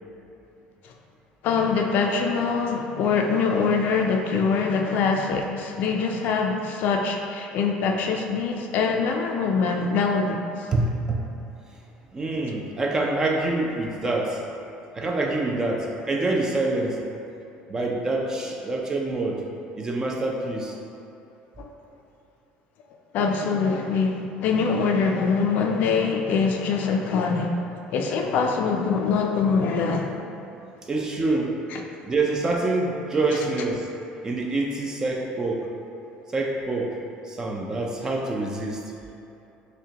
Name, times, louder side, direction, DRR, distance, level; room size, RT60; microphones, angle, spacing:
voice 1, 1.4-10.7 21.6-21.7 23.1-27.6 27.9-30.2 31.7-31.8, left 5 dB, 55° left, 2 dB, 0.4 m, -24 dB
voice 2, 10.7-11.2 12.1-14.4 14.9-17.0 17.7-19.4 19.8-20.8 30.9-31.5 32.0-33.9 34.2-35.7 36.3-37.0 37.2-38.8, right 2 dB, 20° right, 0 dB, 0.4 m, -26 dB
6.2 x 2.2 x 2.8 m, 2.9 s
cardioid pair, 150°, 3 cm